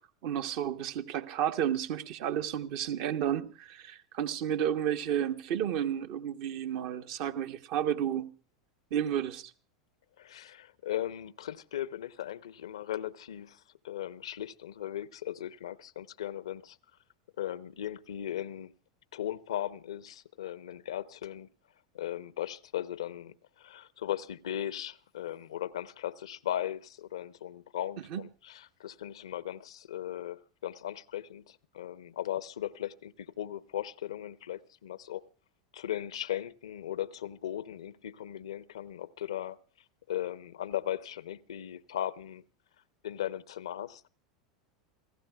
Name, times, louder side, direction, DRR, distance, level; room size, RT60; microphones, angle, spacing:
voice 1, 0.2-8.3 8.9-9.5 28.1-28.2, right 10 dB, 55° right, 1.1 m, -32 dB
voice 2, 10.2-16.8 17.4-18.7 19.1-21.5 21.9-35.2 35.7-39.6 40.1-42.4 43.0-44.0, left 11 dB, 70° left, 0.7 m, -37 dB
29.5 x 15.5 x 2.3 m
figure-of-eight pair, 85°, 3 cm